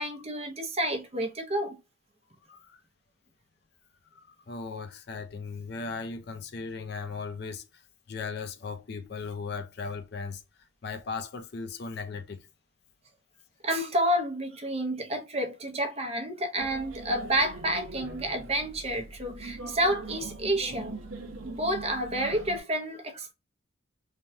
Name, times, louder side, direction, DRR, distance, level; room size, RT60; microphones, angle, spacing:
voice 1, 0.0-1.8 13.6-21.0 21.4-23.3, right 1 dB, 30° right, 0.6 m, -29 dB
voice 2, 2.5-2.8 4.1-7.8 8.1-10.4 10.8-12.5, left 4 dB, 55° left, 0.4 m, -37 dB
sound 1, 16.6-22.6, right 3 dB, 90° right, 0.7 m, -42 dB
3.3 x 2.2 x 2.6 m
head